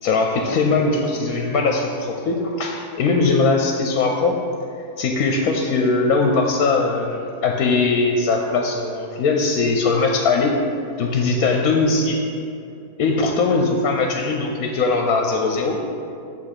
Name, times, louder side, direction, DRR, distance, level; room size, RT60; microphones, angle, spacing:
voice 1, 0.0-4.4 5.0-10.5 11.0-12.2 13.0-15.8, left 3 dB, 70° left, 2 dB, 1.0 m, -20 dB
7.9 x 3.6 x 6.6 m, 2.5 s
omnidirectional pair, 1.7 m